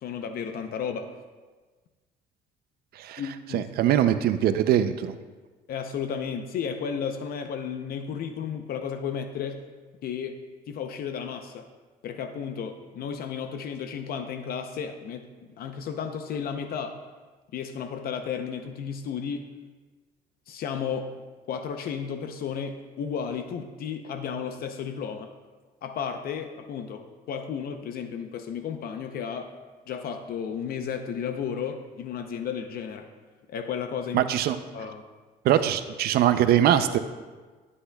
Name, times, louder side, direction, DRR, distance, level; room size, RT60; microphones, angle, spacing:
voice 1, 0.0-1.1 3.2-3.7 5.7-9.6 10.0-10.4 10.7-11.7 12.0-15.2 15.6-17.0 17.5-19.5 20.5-21.2 21.5-25.3 25.8-29.5 29.9-33.1 33.5-34.3 34.7-35.0, left 7 dB, 65° left, 7 dB, 0.7 m, -33 dB
voice 2, 3.5-5.1 34.1-34.6 35.4-37.0, right 11 dB, 65° right, 10 dB, 0.5 m, -22 dB
15.5 x 8.3 x 2.3 m, 1.4 s
cardioid pair, 110°, 17 cm